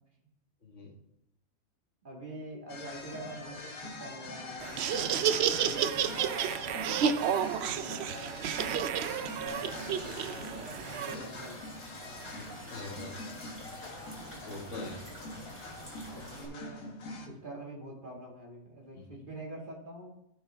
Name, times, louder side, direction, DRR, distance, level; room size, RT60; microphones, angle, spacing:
voice 1, 0.6-0.9 10.0-10.2 11.1-11.2 12.1-13.2 14.4-15.0, left 2 dB, 60° left, 1 dB, 1.8 m, -44 dB
voice 2, 2.0-7.3 7.5-8.7 9.0-11.7 16.0-16.9 17.2-20.1, right 1 dB, 35° right, -1 dB, 2.0 m, -46 dB
sound 1, 2.7-17.3, left 2 dB, 80° left, 1.6 m, -45 dB
Laughter, 4.6-11.1, right 8 dB, 65° right, 0.7 m, -31 dB
sound 2, 9.5-16.5, equal, 10° left, 3.5 m, -47 dB
15.0 x 5.8 x 3.4 m, 0.81 s
omnidirectional pair, 1.5 m